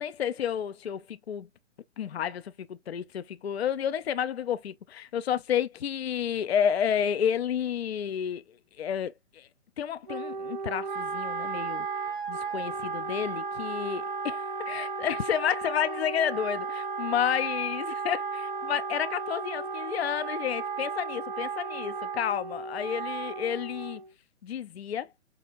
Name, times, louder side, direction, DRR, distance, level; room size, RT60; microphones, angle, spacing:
voice 1, 0.0-1.5 2.0-8.4 8.8-9.5 9.8-11.9 12.3-24.0 24.4-25.1, left 9 dB, 55° left, 0.5 m, -30 dB
Wind instrument woodwind instrument, 10.1-24.1, right 5 dB, 40° right, 0.6 m, -34 dB
5.6 x 2.8 x 2.5 m
figure-of-eight pair, 135°, 39 cm